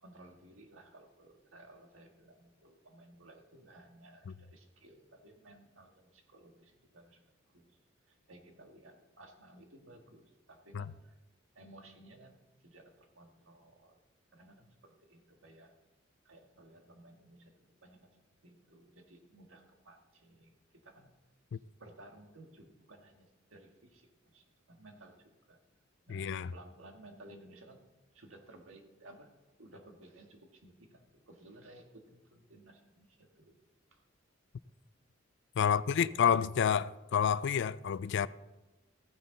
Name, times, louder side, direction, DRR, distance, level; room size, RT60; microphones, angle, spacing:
voice 1, 0.0-7.2 7.5-7.8 8.1-11.1 11.5-14.0 14.3-15.7 16.2-18.1 18.4-21.1 21.8-25.6 26.1-27.8 28.1-29.3 29.6-33.6 33.9-34.0 35.6-36.1, right 1 dB, 90° right, 1.6 m, -57 dB
voice 2, 26.1-26.5 35.6-38.3, left 7 dB, 65° left, 0.4 m, -29 dB
15.0 x 9.7 x 3.9 m
head